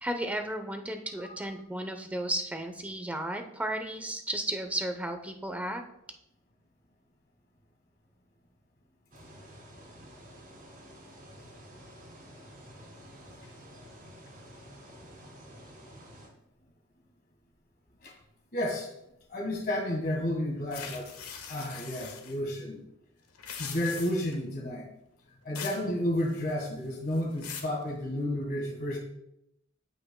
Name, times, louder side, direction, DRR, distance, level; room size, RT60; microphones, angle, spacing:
voice 1, 0.0-5.8, right 1 dB, 5° right, 5 dB, 0.7 m, -34 dB
sound 1, 9.1-16.3, equal, 40° right, 2.4 m, -50 dB
voice 2, 18.5-18.9 19.3-21.1 21.5-22.8 23.5-24.9 25.4-29.0, left 1 dB, 45° left, -1 dB, 1.6 m, -31 dB
sound 2, 20.7-22.3 23.3-24.3 25.5-25.9 26.2-26.7 27.1-27.8, left 7 dB, 90° left, 1.2 m, -42 dB
14.5 x 5.6 x 2.2 m, 0.81 s
head